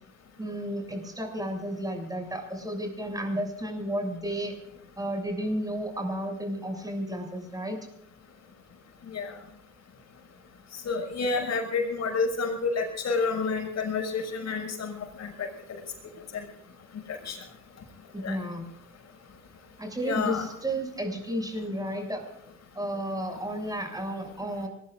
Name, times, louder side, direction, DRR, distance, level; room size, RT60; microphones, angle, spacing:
voice 1, 0.4-4.5 5.0-7.8 18.1-18.7 19.8-22.2 22.7-24.7, equal, 10° right, 3 dB, 6.9 m, -32 dB
voice 2, 10.8-14.9 15.2-15.3 17.2-17.4 18.2-18.4 20.0-20.4, left 4 dB, 60° left, 3 dB, 6.4 m, -29 dB
25.0 x 20.5 x 2.6 m, 0.78 s
cardioid pair, 90°, 30 cm